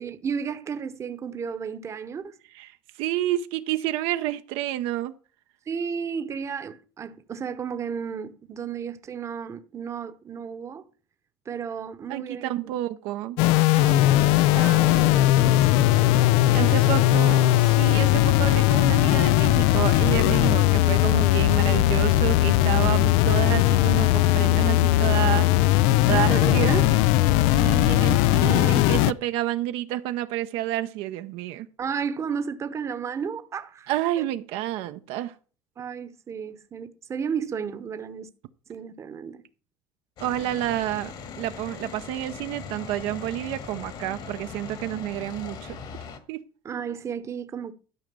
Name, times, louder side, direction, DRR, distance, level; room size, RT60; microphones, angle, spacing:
voice 1, 0.0-2.3 5.7-10.8 11.5-12.5 13.7-16.2 16.5-16.7 26.1-26.9 28.4-29.1 31.8-33.9 34.2-34.3 35.8-38.3 38.7-39.4 46.6-47.7, right 6 dB, 30° right, 0.9 m, -33 dB
voice 2, 2.5-5.1 12.1-13.4 16.5-25.5 26.1-27.0 27.4-31.7 33.9-35.3 40.2-45.8 46.3-46.4, right 14 dB, 70° right, 0.7 m, -29 dB
sound 1, 13.4-29.1, left 15 dB, 80° left, 0.4 m, -19 dB
sound 2, 40.2-46.2, left 5 dB, 50° left, 1.9 m, -40 dB
12.5 x 5.1 x 6.8 m
cardioid pair, 120°, 10 cm